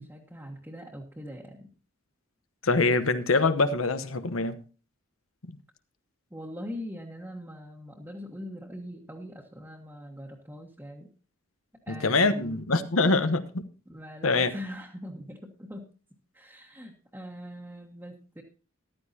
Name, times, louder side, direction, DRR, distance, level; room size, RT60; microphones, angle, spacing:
voice 1, 0.0-1.7 6.3-11.1 11.9-12.6 13.9-15.9 16.3-18.4, equal, 10° right, 1.3 m, -42 dB
voice 2, 2.6-4.6 11.9-13.6 14.2-14.5, left 3 dB, 80° left, 1.0 m, -24 dB
14.5 x 12.5 x 2.8 m
head